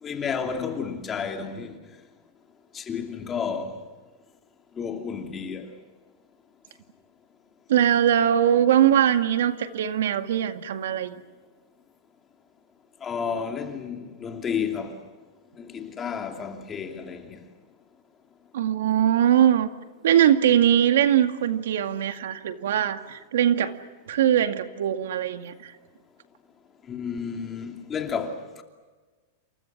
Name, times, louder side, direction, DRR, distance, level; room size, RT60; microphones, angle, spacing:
voice 1, 0.0-1.8 2.7-3.7 4.8-5.7 13.0-15.0 15.6-17.4 26.9-28.6, left 6 dB, 15° left, 2.8 m, -31 dB
voice 2, 7.7-11.2 18.5-19.7 20.0-23.7 24.1-25.7, right 10 dB, 80° right, 2.1 m, -21 dB
29.0 x 28.5 x 6.1 m
supercardioid pair, 160°, 0 cm